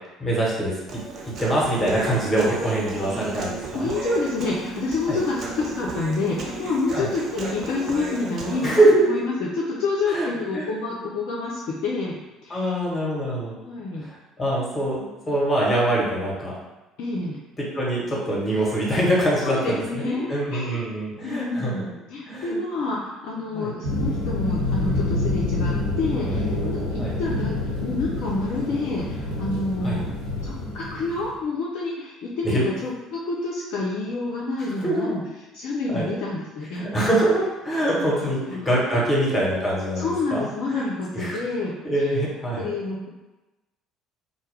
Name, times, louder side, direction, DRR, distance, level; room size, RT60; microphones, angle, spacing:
voice 1, 0.2-0.7 1.4-3.9 5.1-5.2 6.9-7.1 8.6-9.2 10.1-10.3 10.5-10.7 12.5-13.6 14.0-16.5 17.2-17.3 17.7-21.7 22.2-22.6 23.5-23.7 26.3-26.4 27.0-27.1 29.8-30.0 32.4-32.6 34.7-35.2 35.9-36.1 36.7-41.4 41.8-42.6, right 1 dB, 20° left, -5 dB, 1.0 m, -24 dB
Human voice, 0.9-8.9, right 3 dB, 45° right, 0.5 m, -34 dB
voice 2, 3.7-12.8 13.6-14.1 17.0-17.4 19.3-20.8 21.2-30.0 30.4-35.2 35.5-36.9 37.8-37.9 38.2-39.1 40.0-42.1 42.6-43.1, left 3 dB, 55° left, -4 dB, 0.3 m, -28 dB
sound 1, 23.8-31.3, left 2 dB, 90° right, 0.6 m, -27 dB
2.1 x 2.1 x 3.2 m, 1.1 s
figure-of-eight pair, 55°, 0 cm